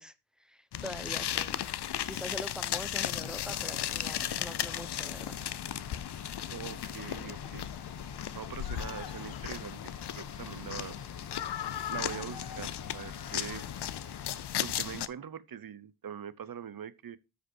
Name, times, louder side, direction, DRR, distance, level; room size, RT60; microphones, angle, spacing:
voice 1, 0.0-1.7 2.0-5.4, equal, ahead, 0.7 m, -44 dB
sound 1, 0.7-15.1, left 11 dB, 85° left, 0.6 m, -36 dB
Bus, 3.4-14.4, left 4 dB, 45° left, 1.6 m, -48 dB
voice 2, 6.5-7.7 8.3-11.0 11.9-13.7 14.3-17.2, right 8 dB, 60° right, 0.8 m, -43 dB
sound 2, 8.5-14.8, left 7 dB, 65° left, 0.9 m, -53 dB
13.0 x 5.2 x 4.4 m
wide cardioid pair, 145°, 39 cm